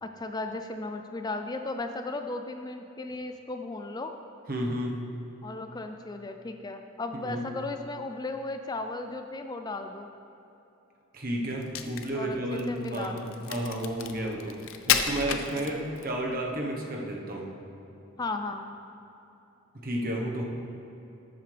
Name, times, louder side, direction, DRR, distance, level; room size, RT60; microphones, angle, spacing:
voice 1, 0.0-4.1 5.4-10.1 12.1-13.4 15.3-15.7 18.2-18.8, left 2 dB, 20° left, 6 dB, 0.4 m, -36 dB
voice 2, 4.5-5.0 7.1-7.4 11.1-17.5 19.7-20.4, right 1 dB, 45° right, 0 dB, 1.1 m, -32 dB
Crack, 11.5-16.2, left 8 dB, 65° left, 0.6 m, -31 dB
13.5 x 8.0 x 3.4 m, 3.0 s
head